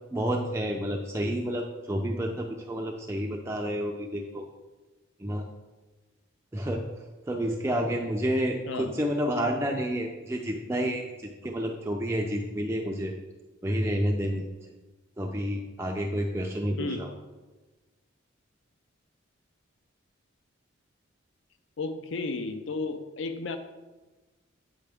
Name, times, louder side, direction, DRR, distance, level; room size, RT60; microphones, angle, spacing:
voice 1, 0.1-4.5 5.2-5.4 6.5-6.9 7.3-11.1 11.4-13.1 13.6-14.4 15.2-17.1, equal, 15° right, 1 dB, 0.4 m, -29 dB
voice 2, 16.8-17.1 21.8-23.6, left 3 dB, 60° left, 9 dB, 0.5 m, -33 dB
8.8 x 5.7 x 3.4 m, 1.2 s
head